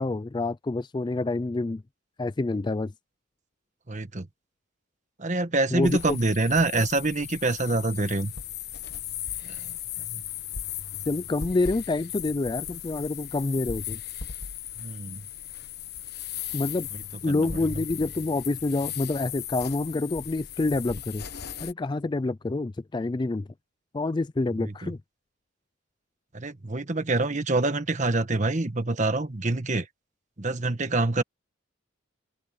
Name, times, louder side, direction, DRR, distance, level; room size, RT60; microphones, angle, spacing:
voice 1, 0.0-1.8 2.2-2.9 5.7-6.2 11.1-14.0 16.5-16.9 17.2-21.2 21.6-23.5 23.9-25.0, left 2 dB, 20° left, 0.3 m, -27 dB
voice 2, 3.9-4.3 5.2-8.3 9.4-9.7 10.1-10.2 14.8-15.2 17.3-17.5 17.7-17.8 24.6-24.9 26.3-29.9 30.4-31.2, right 2 dB, 35° right, 1.4 m, -26 dB
sound 1, 5.8-21.7, left 9 dB, 55° left, 1.3 m, -37 dB
head